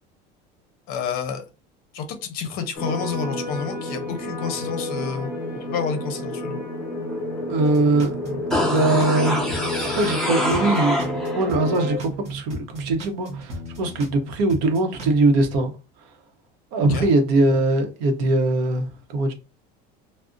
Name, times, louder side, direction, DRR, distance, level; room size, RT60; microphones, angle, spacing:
voice 1, 0.9-1.5 1.9-5.3 5.7-6.6 16.9-17.1, left 6 dB, 45° left, 0.6 m, -29 dB
sound 1, 2.7-12.0, left 1 dB, 20° left, 0.9 m, -30 dB
voice 2, 7.5-8.1 8.5-15.7 16.7-19.3, right 2 dB, 65° right, 0.8 m, -21 dB
sound 2, 7.6-10.2 10.5-14.2 14.5-15.2, right 2 dB, 30° right, 0.8 m, -36 dB
sound 3, 8.5-11.5 11.8-11.9, left 1 dB, ahead, 0.5 m, -26 dB
2.5 x 2.0 x 3.6 m
cardioid pair, 175°, 20 cm